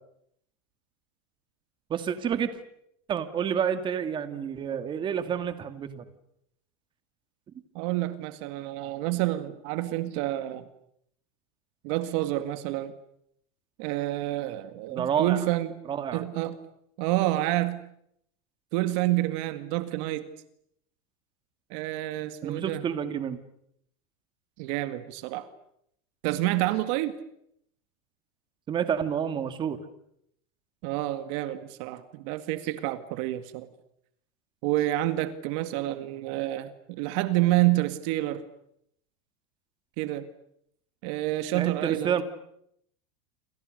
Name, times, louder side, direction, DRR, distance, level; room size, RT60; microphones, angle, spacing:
voice 1, 1.9-2.5 3.1-6.0 14.9-15.4 15.9-16.2 22.4-23.4 28.7-29.8 41.5-42.2, right 8 dB, 25° right, 9 dB, 2.2 m, -29 dB
voice 2, 7.7-10.6 11.8-12.9 13.8-15.8 16.1-16.6 17.0-17.8 18.7-20.3 21.7-22.8 24.6-25.5 26.2-27.1 30.8-33.7 34.6-38.4 40.0-40.3 41.0-42.2, right 16 dB, 55° right, 11 dB, 1.9 m, -28 dB
29.0 x 26.5 x 6.6 m, 0.73 s
supercardioid pair, 140°, 18 cm